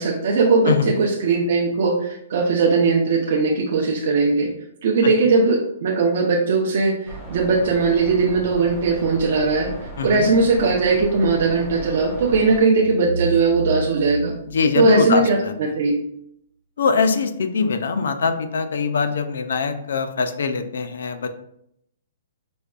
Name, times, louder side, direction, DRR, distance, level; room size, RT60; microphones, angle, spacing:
voice 1, 0.0-4.5 4.8-9.7 10.0-14.3 14.8-15.4 15.8-16.0, right 4 dB, 50° right, -2 dB, 0.5 m, -19 dB
sound 1, 7.1-12.6, right 1 dB, 5° left, 0.5 m, -37 dB
voice 2, 10.0-10.3 14.5-15.5 16.8-21.3, left 5 dB, 75° left, 9 dB, 0.4 m, -22 dB
sound 2, 12.7-15.6, right 3 dB, 80° right, 0.8 m, -31 dB
5.0 x 2.2 x 2.4 m, 0.74 s
hypercardioid pair, 175°, 0 cm